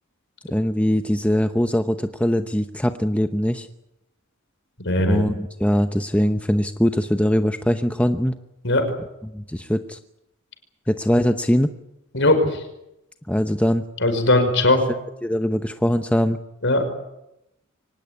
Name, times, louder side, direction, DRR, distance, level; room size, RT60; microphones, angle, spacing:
voice 1, 0.5-3.7 5.0-8.4 9.3-10.0 10.9-11.7 13.3-13.8 15.2-16.4, equal, 5° left, 8 dB, 0.8 m, -21 dB
voice 2, 4.8-5.2 8.6-8.8 12.1-12.6 14.0-14.8 16.6-16.9, left 2 dB, 55° left, 7 dB, 5.3 m, -19 dB
24.0 x 19.0 x 9.7 m, 0.86 s
head